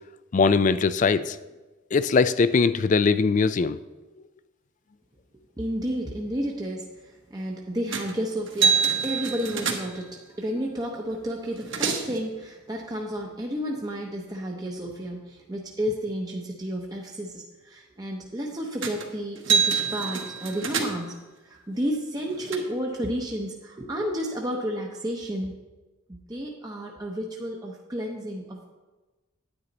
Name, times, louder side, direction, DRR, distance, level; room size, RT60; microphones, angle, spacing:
voice 1, 0.3-1.4 1.9-3.8, left 4 dB, 35° left, 15 dB, 0.3 m, -21 dB
voice 2, 5.6-21.1 21.5-25.5 26.1-28.7, equal, 20° right, -1 dB, 0.7 m, -31 dB
sound 1, 7.9-8.2 8.5-10.1 11.1-11.2 11.4-12.2 18.8-19.1 19.4-21.2 21.9-22.6, right 6 dB, 60° right, 1.2 m, -26 dB
9.7 x 9.4 x 4.0 m, 1.2 s
head